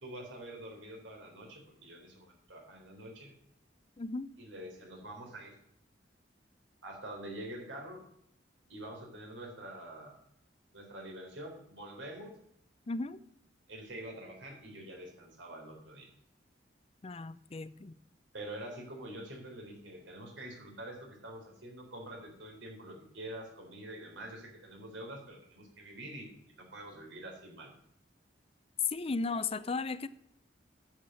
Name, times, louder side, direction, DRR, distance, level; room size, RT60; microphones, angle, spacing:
voice 1, 0.0-3.3 4.4-5.6 6.8-8.0 8.7-10.2 10.7-12.4 13.7-16.1 18.3-27.7, right 1 dB, 90° right, 2 dB, 3.8 m, -46 dB
voice 2, 4.0-4.3 12.9-13.2 17.0-18.0 28.8-30.1, left 4 dB, 30° left, 15 dB, 0.5 m, -35 dB
10.0 x 7.4 x 6.4 m, 0.73 s
head